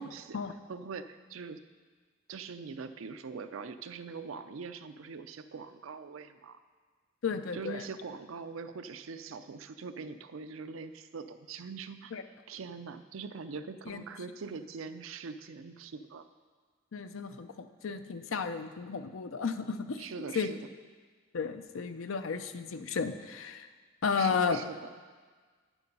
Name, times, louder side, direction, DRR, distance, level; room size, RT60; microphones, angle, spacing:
voice 1, 0.7-1.6 2.3-6.6 7.5-12.1 12.5-16.3 20.0-20.6 24.2-24.8, right 5 dB, 80° right, 10 dB, 0.5 m, -42 dB
voice 2, 7.2-7.8 12.1-12.2 13.9-14.0 16.9-20.1 20.3-20.5 21.3-23.7 24.0-24.6, left 5 dB, 80° left, 9 dB, 0.5 m, -33 dB
9.3 x 7.1 x 5.4 m, 1.5 s
head